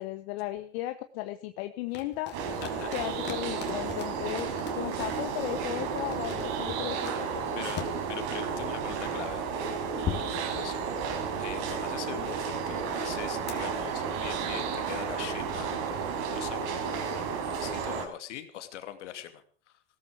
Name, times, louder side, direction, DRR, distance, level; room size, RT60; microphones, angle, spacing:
voice 1, 0.0-2.4 2.9-7.6, left 16 dB, 55° left, 8 dB, 1.4 m, -36 dB
sound 1, 1.9-5.5 6.0-7.9 10.1-11.4 13.5-13.6, left 8 dB, 30° left, 3.3 m, -39 dB
sound 2, 2.3-18.1, right 6 dB, 55° right, 4.8 m, -32 dB
voice 2, 2.6-2.9 7.5-9.5 10.0-10.8 11.1-19.8, left 11 dB, 80° left, 8 dB, 2.6 m, -42 dB
17.5 x 14.5 x 5.0 m, 0.44 s
hypercardioid pair, 120°, 36 cm